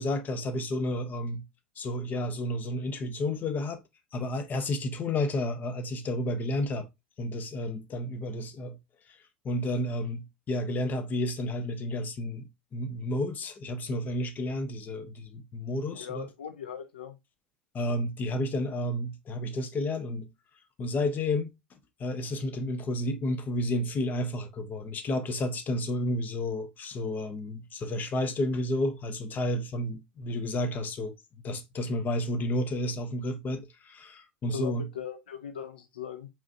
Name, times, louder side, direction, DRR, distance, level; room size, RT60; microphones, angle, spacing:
voice 1, 0.0-1.4 1.8-3.8 4.1-6.9 7.2-8.8 9.4-16.3 17.7-20.3 20.8-21.5 22.0-31.1 31.4-34.8, left 1 dB, 35° left, 1.0 m, -31 dB
voice 2, 15.9-17.2 34.5-36.3, left 8 dB, 80° left, 0.6 m, -39 dB
4.9 x 3.7 x 2.8 m
hypercardioid pair, 80°, 5 cm